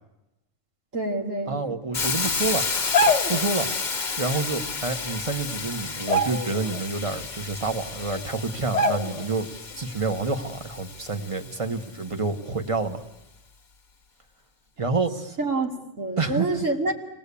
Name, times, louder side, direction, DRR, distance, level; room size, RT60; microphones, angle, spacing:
voice 1, 0.9-1.6 15.4-16.9, right 2 dB, 70° right, 1 dB, 3.1 m, -27 dB
voice 2, 1.5-2.7 3.3-3.7 4.2-13.0 14.8-15.1 16.2-16.6, right 3 dB, 25° right, 7 dB, 1.4 m, -28 dB
Hiss, 1.9-11.8, left 5 dB, 40° left, 1.1 m, -31 dB
sound 1, 2.8-3.5 4.9-5.0 5.4-5.6 6.0-6.8 7.2-7.3 8.1-8.2 8.7-9.4 9.7-9.9, left 1 dB, 65° left, 1.4 m, -24 dB
27.5 x 18.5 x 8.5 m, 0.94 s
omnidirectional pair, 1.4 m